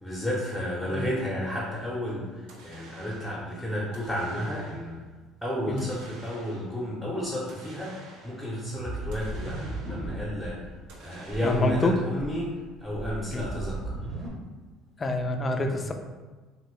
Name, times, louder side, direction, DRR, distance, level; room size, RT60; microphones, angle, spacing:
voice 1, 0.0-5.0 5.4-10.7 11.0-14.0 15.5-15.9, equal, ahead, -6 dB, 0.7 m, -32 dB
sound 1, 2.5-3.5 3.9-5.0 5.8-6.8 7.5-8.5 9.1-10.2 10.9-12.0, right 2 dB, 80° right, 0.6 m, -50 dB
sound 2, 8.6-10.5 10.9-11.0 11.2-11.8 12.2-14.3, right 2 dB, 35° right, 0.8 m, -36 dB
voice 2, 11.4-12.0 13.3-13.5 15.0-15.9, left 2 dB, 25° left, 5 dB, 0.3 m, -27 dB
2.7 x 2.6 x 3.2 m, 1.3 s
supercardioid pair, 105°, 0 cm